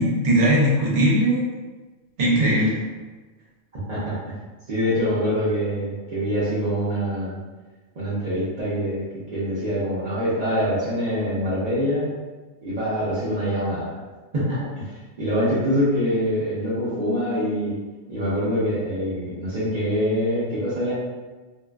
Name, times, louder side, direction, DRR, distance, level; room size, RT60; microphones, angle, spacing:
voice 1, 0.0-1.4 2.2-2.9, right 1 dB, 65° right, -4 dB, 0.9 m, -19 dB
voice 2, 4.7-7.4 8.0-9.0 9.3-12.1 12.6-13.9 14.3-14.9 15.2-17.8 18.1-20.9, equal, 45° right, -11 dB, 0.6 m, -24 dB
2.5 x 2.3 x 2.3 m, 1.3 s
omnidirectional pair, 1.3 m